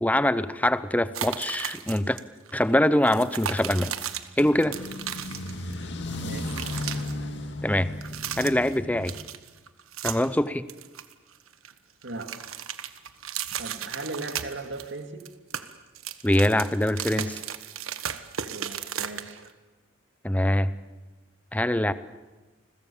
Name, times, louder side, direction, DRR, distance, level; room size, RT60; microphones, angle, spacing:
voice 1, 0.0-2.2 2.5-3.9 4.4-4.8 7.6-7.9 8.4-9.1 10.0-10.7 16.2-17.4 20.2-20.7 21.5-21.9, left 1 dB, 5° left, 15 dB, 0.7 m, -23 dB
sound 1, 1.1-2.2 2.5-2.6 3.0-5.8 6.1-7.1 7.9-8.8 9.1-10.4 10.7-11.7 12.0-14.9 15.2-19.5, right 9 dB, 90° right, 1.4 m, -35 dB
sound 2, 4.4-9.3, left 1 dB, 55° left, 2.3 m, -35 dB
voice 2, 6.2-6.6 12.0-12.3 13.6-15.2 18.4-19.5, right 2 dB, 60° right, 5 dB, 2.5 m, -38 dB
30.0 x 21.5 x 7.2 m, 1.2 s
head